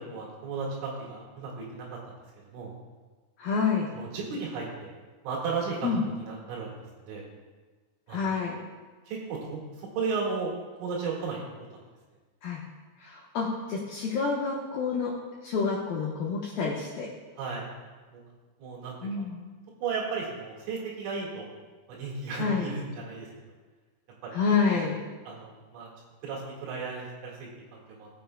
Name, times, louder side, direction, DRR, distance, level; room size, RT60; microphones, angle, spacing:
voice 1, 0.0-2.0 2.5-2.7 3.9-4.9 5.2-6.7 7.0-7.3 8.1-8.2 9.1-10.5 10.8-11.5 17.4-17.7 18.1-18.2 18.6-19.0 19.8-21.6 21.9-23.3 24.2-24.4 25.3-25.9 26.2-28.1, right 4 dB, 75° right, -3 dB, 4.2 m, -34 dB
voice 2, 3.4-3.9 5.8-6.0 8.1-8.6 12.4-12.6 13.0-15.1 15.4-17.1 19.0-19.4 22.4-22.7 24.3-25.0, left 5 dB, 85° left, -3 dB, 2.0 m, -28 dB
19.0 x 6.5 x 2.2 m, 1.4 s
omnidirectional pair, 5.5 m